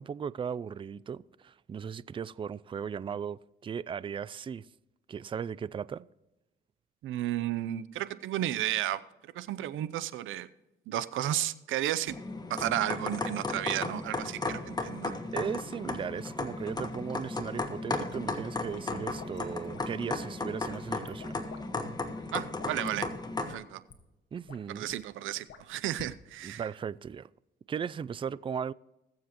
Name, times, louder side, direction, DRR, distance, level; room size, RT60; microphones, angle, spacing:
voice 1, 0.0-4.7 5.1-6.0 15.3-21.3 24.3-24.9 26.4-27.3 27.7-28.7, right 7 dB, 25° right, 0.3 m, -37 dB
voice 2, 7.0-9.0 9.3-10.5 10.9-12.2 12.5-15.1 22.3-23.1 23.5-23.8 24.8-26.6, right 13 dB, 80° right, 0.6 m, -33 dB
sound 1, 12.1-23.5, left 2 dB, 20° left, 1.4 m, -35 dB
sound 2, 18.6-20.2 20.6-21.6 21.9-22.9 23.5-23.6 23.9-24.0 24.3-24.9 25.5-26.1, left 6 dB, 70° left, 1.4 m, -51 dB
21.0 x 7.4 x 3.0 m
cardioid pair, 90°, 20 cm